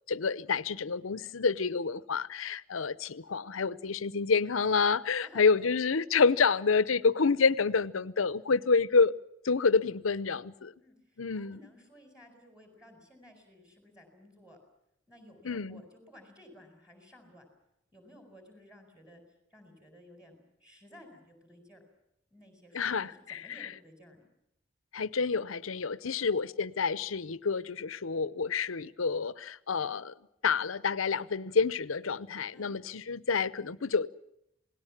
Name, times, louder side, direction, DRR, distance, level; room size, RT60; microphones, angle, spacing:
voice 1, 0.1-9.1 9.4-10.7 11.2-11.6 15.4-15.8 22.7-23.7 24.9-30.1 30.4-34.1, left 5 dB, 90° left, 0.8 m, -28 dB
voice 2, 5.2-5.7 8.6-8.8 10.8-14.6 15.1-17.5 17.9-19.2 19.5-21.8 22.3-24.2 26.0-26.3 32.5-32.7, equal, 5° right, 4.6 m, -55 dB
27.5 x 18.5 x 7.4 m
head